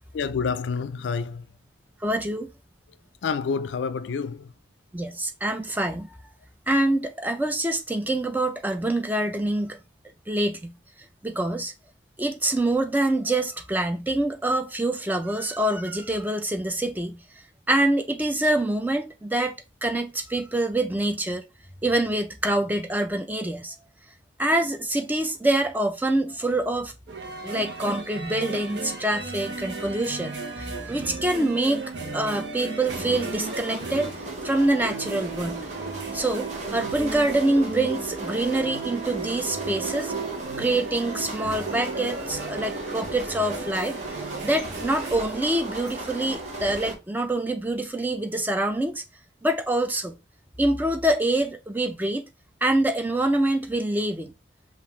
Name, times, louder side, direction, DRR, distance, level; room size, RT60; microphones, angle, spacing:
voice 1, 0.1-1.5 3.2-4.5, left 5 dB, 70° left, 0.4 m, -28 dB
voice 2, 2.0-2.5 4.9-6.1 6.7-9.8 10.3-10.7 11.2-11.7 12.2-17.2 17.7-21.4 21.8-23.7 24.4-26.9 27.4-31.8 32.1-34.1 34.4-35.7 36.1-40.1 40.6-44.0 44.4-49.0 49.4-50.1 50.6-52.2 52.6-54.3, right 1 dB, 10° right, 0.4 m, -25 dB
sound 1, 27.1-45.2, right 4 dB, 65° right, 0.9 m, -35 dB
sound 2, 32.8-47.0, right 2 dB, 40° right, 1.2 m, -36 dB
5.4 x 2.5 x 3.1 m
head